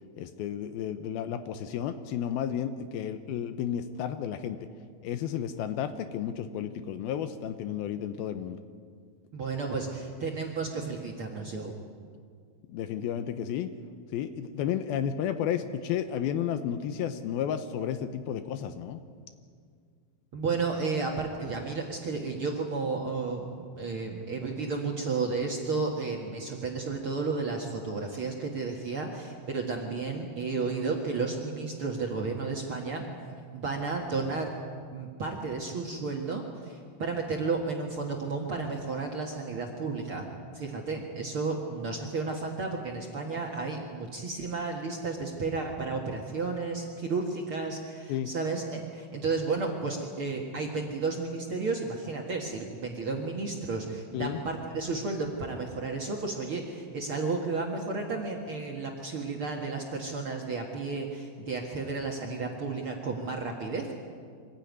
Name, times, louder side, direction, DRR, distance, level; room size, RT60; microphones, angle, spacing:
voice 1, 0.2-4.7 5.0-8.6 12.7-13.7 14.1-19.0 48.1-48.3 54.1-54.4, left 9 dB, 80° left, 9 dB, 2.7 m, -32 dB
voice 2, 9.3-11.7 20.3-33.0 33.5-34.5 34.9-40.3 40.5-63.9, right 4 dB, 45° right, 0 dB, 2.0 m, -32 dB
24.0 x 15.5 x 9.5 m, 2.1 s
omnidirectional pair, 4.3 m